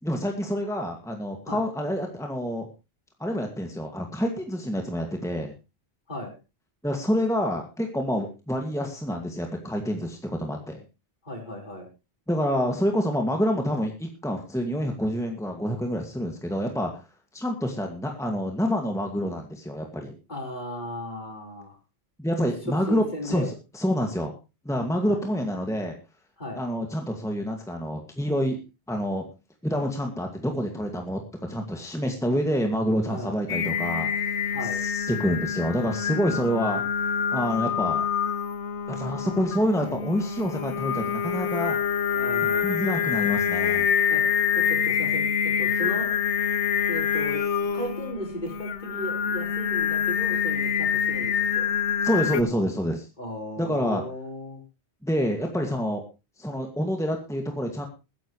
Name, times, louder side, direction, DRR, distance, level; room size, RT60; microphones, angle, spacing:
voice 1, 0.0-2.7 3.2-5.5 6.8-10.8 12.3-17.0 17.3-20.1 22.2-23.5 23.7-24.3 24.6-26.0 26.6-28.6 28.9-29.2 29.6-34.5 34.8-36.8 37.3-38.0 38.9-41.8 42.6-43.9 52.0-53.1 53.6-54.0 55.0-56.0 56.4-57.9, equal, 5° left, 3 dB, 2.1 m, -27 dB
voice 2, 11.2-11.9 20.3-21.8 22.4-23.5 25.0-25.2 26.4-26.6 33.0-33.4 34.5-34.8 36.7-36.8 42.1-42.8 44.1-44.2 44.5-46.1 46.9-47.4 47.7-51.7 53.2-54.6, equal, 45° left, 1 dB, 5.0 m, -36 dB
Singing, 33.5-52.4, left 7 dB, 85° left, 1.3 m, -26 dB
21.0 x 10.5 x 3.2 m, 0.29 s
omnidirectional pair, 1.1 m